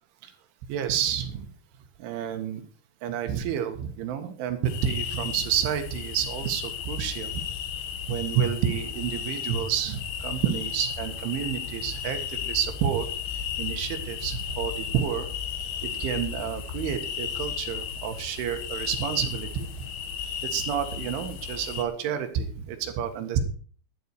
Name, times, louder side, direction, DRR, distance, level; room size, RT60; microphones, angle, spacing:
voice 1, 0.7-1.5 2.0-2.6 3.0-7.4 8.1-13.1 13.6-15.3 15.8-19.7 20.4-23.4, right 9 dB, 90° right, 7 dB, 4.2 m, -29 dB
sound 1, 4.6-21.8, left 8 dB, 65° left, 3.1 m, -34 dB
11.5 x 11.5 x 4.7 m, 0.43 s
omnidirectional pair, 5.3 m